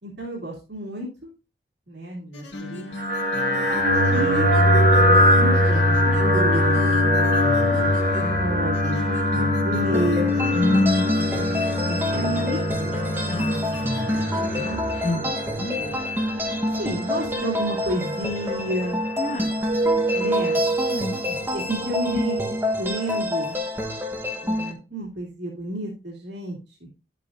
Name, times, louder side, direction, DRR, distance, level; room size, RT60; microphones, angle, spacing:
voice 1, 0.0-1.3 1.9-2.9 4.1-4.5 5.0-6.0 6.3-6.8 7.7-10.3 11.8-13.1 14.5-14.8 15.6-16.1 16.8-19.0 20.1-20.6 21.2-22.4 22.7-23.6 24.4-26.6, right 1 dB, 75° right, -2 dB, 2.7 m, -31 dB
sound 1, 2.3-15.2, left 1 dB, 75° left, 2.6 m, -34 dB
sound 2, 2.9-22.6, left 1 dB, 50° right, 4.2 m, -23 dB
voice 2, 7.2-7.8 10.5-11.5 13.3-13.8 15.0-15.8 19.2-19.5 20.9-21.1, left 1 dB, 40° left, 3 dB, 1.8 m, -27 dB
sound 3, 9.9-24.7, left 1 dB, 10° right, 1.1 m, -28 dB
10.5 x 8.3 x 2.6 m, 0.30 s
head